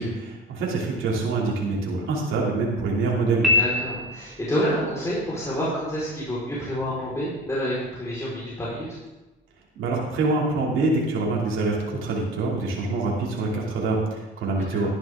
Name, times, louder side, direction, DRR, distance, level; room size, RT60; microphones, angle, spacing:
voice 1, 0.0-3.5 9.8-14.9, right 3 dB, 85° right, -3 dB, 2.8 m, -25 dB
Piano, 3.4-4.5, left 3 dB, ahead, 4.9 m, -23 dB
voice 2, 3.5-8.9 14.6-14.9, equal, 15° left, -7 dB, 4.4 m, -28 dB
13.0 x 11.0 x 3.7 m, 1.1 s
cardioid pair, 90°, 20 cm